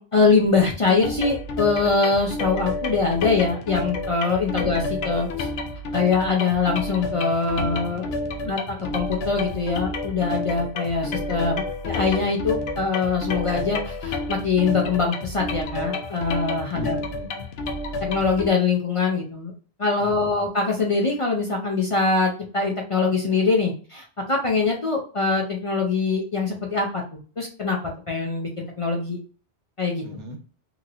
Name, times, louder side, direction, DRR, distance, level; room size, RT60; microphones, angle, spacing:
voice 1, 0.0-5.5 5.9-8.1 8.4-17.0 18.0-19.5 19.8-27.8 28.1-29.2 29.8-30.0, left 4 dB, 40° left, -1 dB, 0.5 m, -23 dB
sound 1, 1.0-18.5, left 2 dB, 65° left, 0.8 m, -30 dB
voice 2, 7.6-8.6 16.7-17.4 20.0-20.4 30.0-30.4, equal, 85° right, 3 dB, 1.2 m, -40 dB
2.9 x 2.8 x 2.5 m, 0.38 s
omnidirectional pair, 1.2 m